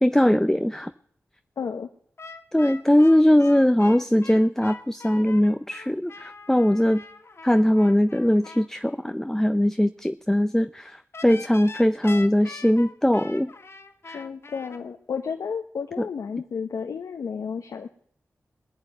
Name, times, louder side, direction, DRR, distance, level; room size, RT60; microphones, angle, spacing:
voice 1, 0.0-0.9 2.5-7.0 7.4-13.5 14.1-14.2 16.0-16.1, left 1 dB, 10° left, 10 dB, 0.7 m, -20 dB
voice 2, 1.6-1.9 14.1-17.9, left 6 dB, 85° left, 4 dB, 1.0 m, -32 dB
sound 1, 2.2-8.7 11.1-14.8, left 3 dB, 50° left, 1.7 m, -42 dB
19.0 x 7.3 x 9.2 m, 0.62 s
cardioid pair, 40°, 5 cm